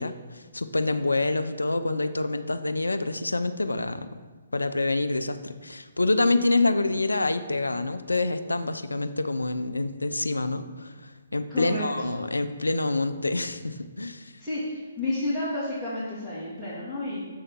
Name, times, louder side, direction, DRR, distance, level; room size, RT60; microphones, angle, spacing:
voice 1, 0.0-4.1 4.5-14.3, left 2 dB, 85° left, 9 dB, 0.4 m, -27 dB
voice 2, 11.5-11.8 14.4-17.3, left 1 dB, ahead, -16 dB, 2.1 m, -31 dB
6.7 x 3.5 x 5.4 m, 1.3 s
figure-of-eight pair, 135°, 0 cm